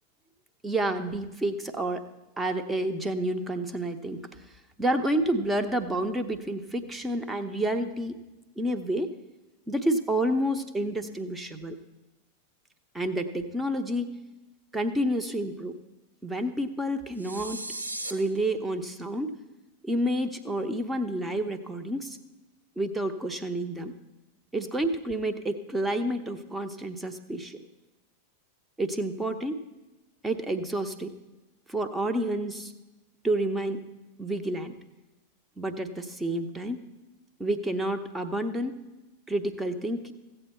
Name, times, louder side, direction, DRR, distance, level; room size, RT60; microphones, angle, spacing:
voice 1, 0.6-2.0 2.4-4.2 4.8-8.2 8.6-9.1 9.7-11.8 12.9-14.1 14.7-15.7 16.2-17.6 18.1-19.3 19.8-22.2 22.8-23.9 24.5-27.6 28.8-29.6 30.2-31.1 31.7-32.7 33.2-33.8 34.2-34.8 35.6-36.8 37.4-38.7 39.3-40.1, right 1 dB, 10° right, 7 dB, 0.8 m, -29 dB
sound 1, 17.2-18.1, right 1 dB, 85° right, 0.8 m, -36 dB
15.0 x 7.9 x 4.4 m, 1.1 s
figure-of-eight pair, 90°, 0 cm